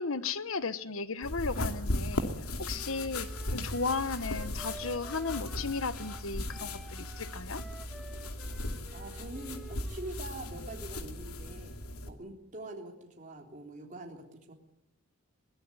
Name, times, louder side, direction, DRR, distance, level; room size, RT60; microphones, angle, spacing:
voice 1, 0.0-2.3 2.6-7.6, left 4 dB, 65° left, 1.1 m, -35 dB
sound 1, 1.2-12.1, left 1 dB, 85° left, 2.6 m, -37 dB
Wind instrument woodwind instrument, 2.7-6.2 6.5-10.4, right 1 dB, ahead, 1.5 m, -50 dB
voice 2, 8.9-14.5, right 1 dB, 35° right, 3.6 m, -45 dB
23.0 x 18.0 x 9.8 m
head